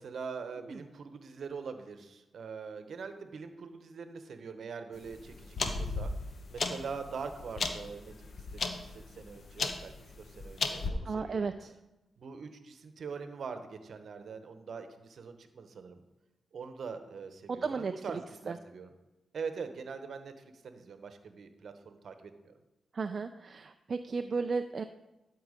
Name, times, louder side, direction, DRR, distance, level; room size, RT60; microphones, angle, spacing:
voice 1, 0.0-6.1 6.5-8.1 8.5-11.5 12.2-16.0 16.5-18.9 19.3-22.5, right 5 dB, 70° right, 9 dB, 1.0 m, -43 dB
sound 1, 5.0-10.9, left 4 dB, 60° left, 1.0 m, -36 dB
voice 2, 11.0-11.7 17.5-18.2 18.5-18.6 22.9-24.8, right 4 dB, 55° right, 8 dB, 0.4 m, -34 dB
12.0 x 4.6 x 5.0 m, 1.0 s
cardioid pair, 55°, 0 cm